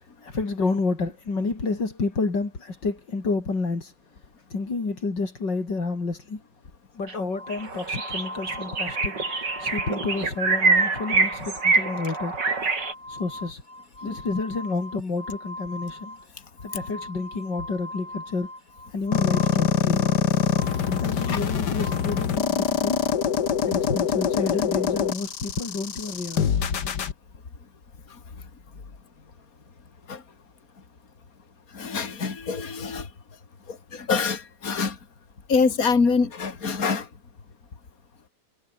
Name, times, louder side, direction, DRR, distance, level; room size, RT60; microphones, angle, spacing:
voice 1, 0.2-3.9 4.5-6.4 7.0-9.2 9.6-12.4 13.1-13.6 14.0-16.2 16.6-18.5 18.9-20.1 20.8-23.1 23.6-26.5, left 3 dB, 90° left, 4.9 m, -29 dB
sound 1, 7.1-7.2 7.5-12.9, right 4 dB, 80° right, 4.2 m, -25 dB
sound 2, 7.3-22.3, left 1 dB, 25° left, 6.3 m, -41 dB
sound 3, 19.1-27.1, left 8 dB, 70° left, 2.1 m, -24 dB
voice 2, 31.7-33.1 33.7-35.0 35.5-37.1, left 5 dB, 55° left, 3.2 m, -25 dB
omnidirectional pair, 1.9 m